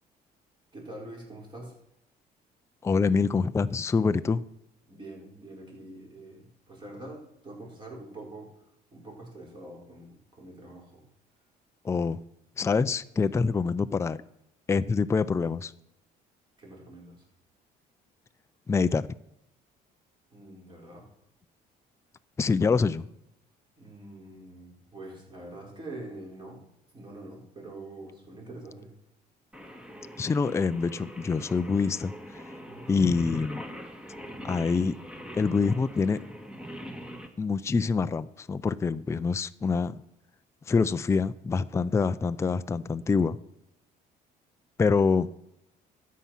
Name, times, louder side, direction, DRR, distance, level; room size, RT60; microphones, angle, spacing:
voice 1, 0.7-1.8 4.9-8.5 8.9-11.0 16.6-17.2 20.3-21.1 23.8-26.7 26.9-28.9 32.6-32.9, right 2 dB, 30° right, -1 dB, 4.7 m, -45 dB
voice 2, 2.8-4.4 11.8-12.2 12.6-14.2 14.7-15.7 18.7-19.1 22.4-23.1 30.2-32.4 32.9-33.6 34.4-35.0 35.3-36.2 37.4-40.0 40.7-43.4 44.8-45.3, left 4 dB, 15° left, 12 dB, 0.4 m, -25 dB
Singing, 29.5-37.3, equal, 5° right, 1.6 m, -43 dB
13.0 x 8.5 x 5.9 m, 0.82 s
cardioid pair, 110°, 17 cm